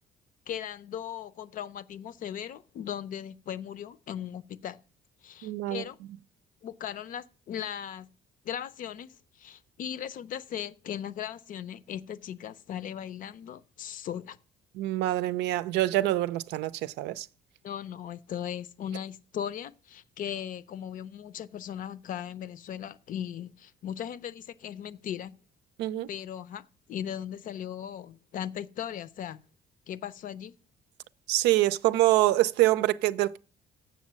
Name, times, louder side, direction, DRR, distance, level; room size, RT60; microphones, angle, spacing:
voice 1, 0.5-4.8 5.2-6.0 6.6-8.1 8.4-14.4 17.6-25.4 26.1-29.4 29.9-30.5, left 9 dB, 55° left, 0.6 m, -38 dB
voice 2, 5.4-5.8 14.7-17.3 25.8-26.1 31.3-33.4, right 16 dB, 90° right, 0.5 m, -25 dB
7.3 x 7.0 x 7.5 m
cardioid pair, 110°, 17 cm